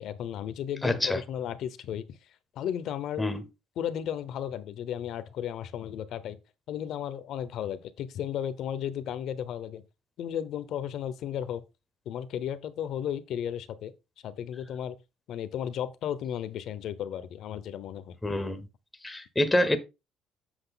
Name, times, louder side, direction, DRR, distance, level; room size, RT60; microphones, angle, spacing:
voice 1, 0.0-2.2 2.6-3.2 3.8-6.4 6.7-9.8 10.2-11.6 12.1-13.9 14.2-15.0 15.3-18.2, left 9 dB, 50° left, 0.8 m, -34 dB
voice 2, 0.8-1.2 3.2-3.4 18.2-18.6 19.0-19.8, left 1 dB, 5° left, 0.8 m, -26 dB
8.0 x 6.3 x 3.9 m
cardioid pair, 170°, 0 cm